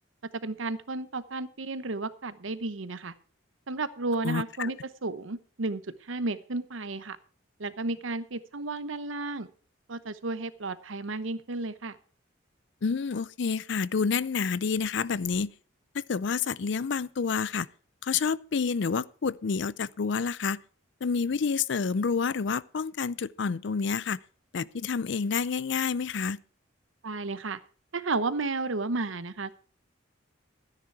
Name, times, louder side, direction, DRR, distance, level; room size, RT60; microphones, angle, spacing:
voice 1, 0.3-3.1 3.7-7.2 7.6-9.5 9.9-12.0 27.0-27.6 27.9-29.5, right 3 dB, 75° right, 0.9 m, -33 dB
voice 2, 4.2-4.7 12.8-15.5 15.9-17.7 18.0-20.6 21.0-24.2 24.5-26.4, left 5 dB, 60° left, 0.5 m, -29 dB
13.5 x 9.9 x 4.6 m
head